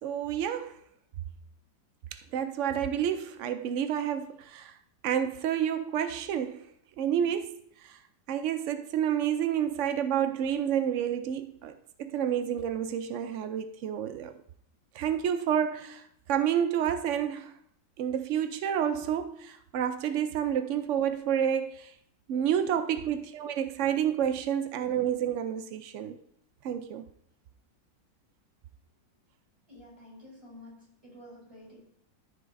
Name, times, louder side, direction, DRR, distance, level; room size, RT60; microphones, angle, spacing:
voice 1, 0.0-0.8 2.1-4.7 5.0-6.7 7.0-8.0 8.3-14.3 14.9-17.5 18.0-21.9 22.3-26.2 26.6-27.1, right 9 dB, 90° right, 0.6 m, -29 dB
voice 2, 29.7-31.8, left 1 dB, 15° right, 3.8 m, -50 dB
13.0 x 6.2 x 2.6 m
omnidirectional pair, 1.9 m